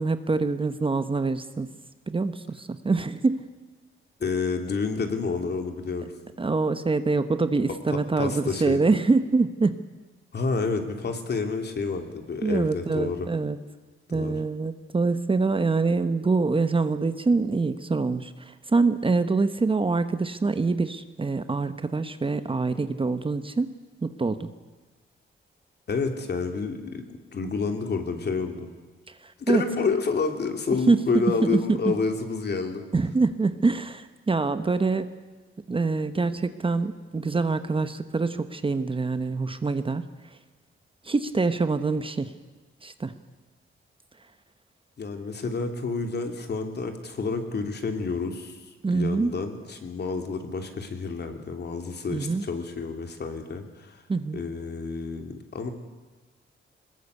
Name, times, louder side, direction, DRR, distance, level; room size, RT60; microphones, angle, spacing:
voice 1, 0.0-1.7 2.1-3.4 6.4-9.7 12.4-13.6 14.1-23.7 24.0-24.5 29.2-29.6 30.9-31.0 31.5-31.9 32.9-35.1 35.7-40.0 41.0-42.3 42.8-43.1 48.8-49.3 52.1-52.4 54.1-54.4, right 3 dB, 25° right, 11 dB, 1.0 m, -25 dB
voice 2, 4.2-6.1 7.9-8.9 10.3-13.3 14.1-14.4 25.9-28.7 29.4-32.8 45.0-48.6 48.9-54.0 54.3-55.7, left 4 dB, 50° left, 5 dB, 3.1 m, -29 dB
22.5 x 20.5 x 8.3 m, 1.3 s
cardioid pair, 115°, 21 cm